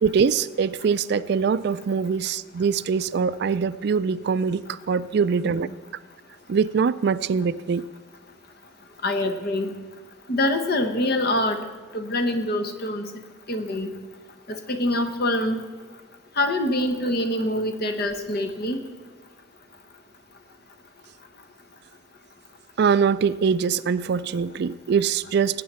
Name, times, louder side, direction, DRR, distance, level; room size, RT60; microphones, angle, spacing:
voice 1, 0.0-5.7 6.5-7.8 22.8-25.6, right 6 dB, 55° right, 16 dB, 0.3 m, -23 dB
voice 2, 9.0-9.7 10.3-11.6 11.9-13.1 13.5-13.9 14.7-15.6 16.4-18.8, left 1 dB, 50° left, 7 dB, 1.0 m, -25 dB
18.5 x 8.4 x 4.4 m, 1.4 s
head